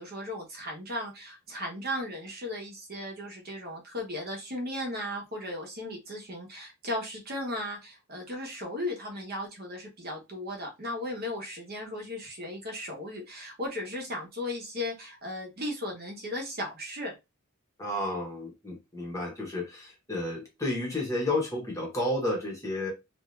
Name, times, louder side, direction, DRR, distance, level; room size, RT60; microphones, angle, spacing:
voice 1, 0.0-17.1, left 1 dB, 45° right, 0.9 m, -36 dB
voice 2, 17.8-22.9, left 1 dB, 15° left, 0.8 m, -31 dB
2.6 x 2.3 x 3.1 m
head